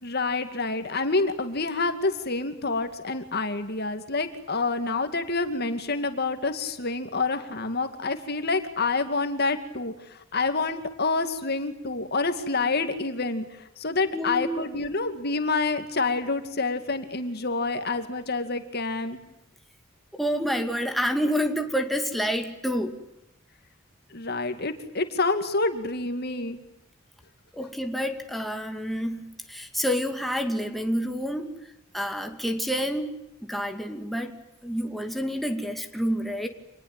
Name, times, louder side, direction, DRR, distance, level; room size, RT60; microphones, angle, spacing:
voice 1, 0.0-19.2 24.1-26.6, left 3 dB, 55° left, 8 dB, 2.4 m, -28 dB
voice 2, 14.1-14.5 20.1-23.0 27.5-31.5 31.9-33.1 33.5-36.5, equal, ahead, 4 dB, 2.3 m, -28 dB
27.0 x 20.5 x 9.1 m, 0.86 s
head